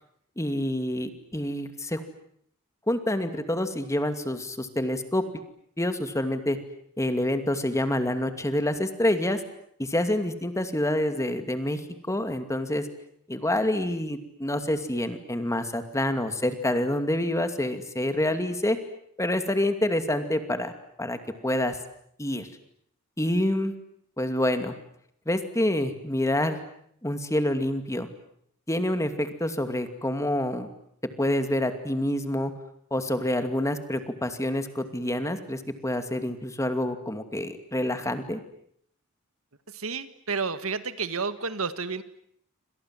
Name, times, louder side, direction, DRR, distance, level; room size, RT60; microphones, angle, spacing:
voice 1, 0.4-2.0 2.9-5.2 5.8-6.6 7.0-9.4 9.8-11.8 12.1-12.9 13.3-18.8 19.2-20.7 21.0-21.8 22.2-22.5 23.2-23.7 24.2-24.7 25.3-26.6 27.0-28.1 28.7-30.7 31.2-32.5 32.9-38.4, left 1 dB, 15° left, 8 dB, 2.5 m, -27 dB
voice 2, 39.7-42.0, right 5 dB, 70° right, 12 dB, 1.7 m, -31 dB
28.5 x 26.5 x 7.7 m, 0.68 s
head